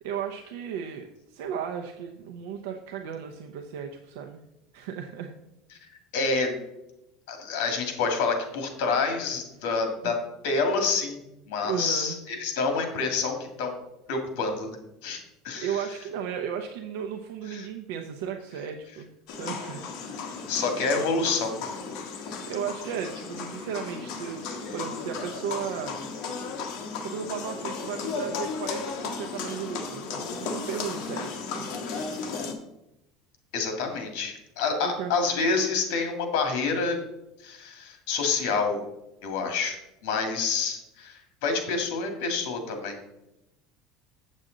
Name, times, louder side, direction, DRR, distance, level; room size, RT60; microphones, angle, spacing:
voice 1, 0.0-4.4 4.7-5.3 10.0-10.1 11.6-12.2 15.6-19.1 19.3-20.2 22.0-26.1 27.0-31.7 34.8-35.1, right 8 dB, 80° right, 4 dB, 0.7 m, -35 dB
voice 2, 6.1-6.6 7.3-10.1 10.4-11.2 11.5-13.7 14.1-14.8 15.0-15.2 15.4-15.8 17.5-17.7 20.5-21.7 33.5-37.0 37.4-38.8 39.2-39.8 40.0-43.0, left 4 dB, 65° left, 5 dB, 1.9 m, -27 dB
sound 1, 19.3-32.5, left 5 dB, 50° left, 1.3 m, -35 dB
7.9 x 7.4 x 3.9 m, 0.89 s
cardioid pair, 180°, 0 cm